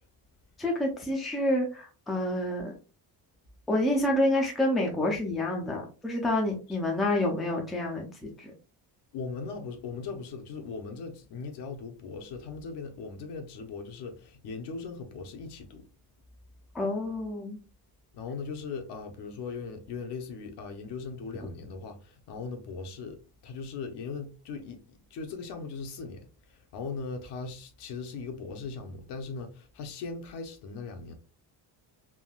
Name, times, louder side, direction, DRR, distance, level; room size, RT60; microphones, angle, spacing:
voice 1, 0.6-2.7 3.7-8.5 16.7-17.6, left 1 dB, ahead, 0.3 m, -28 dB
voice 2, 9.1-15.9 18.1-23.2 23.4-31.1, left 4 dB, 75° left, 0.8 m, -39 dB
3.4 x 2.2 x 2.3 m
cardioid pair, 175°, 41 cm